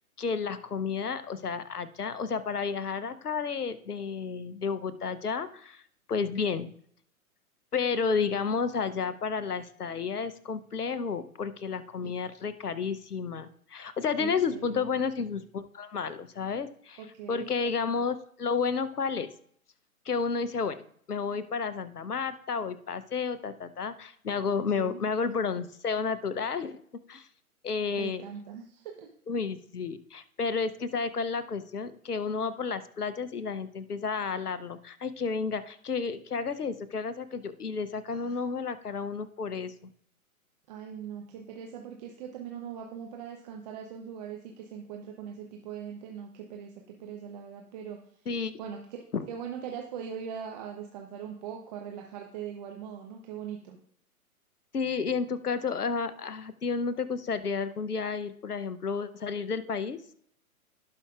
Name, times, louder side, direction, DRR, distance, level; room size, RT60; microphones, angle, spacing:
voice 1, 0.2-5.8 6.1-6.7 7.7-19.3 20.1-20.8 21.1-26.8 27.1-27.3 27.6-28.2 29.3-39.9 48.3-48.5 49.1-49.2 54.7-60.0, left 5 dB, 85° left, 13 dB, 0.9 m, -31 dB
voice 2, 14.2-14.8 17.0-17.5 24.7-25.0 27.9-29.1 38.1-38.4 40.7-48.0 48.6-53.8, right 8 dB, 30° right, 2 dB, 0.9 m, -41 dB
17.0 x 5.6 x 2.4 m, 0.64 s
figure-of-eight pair, 125°, 44 cm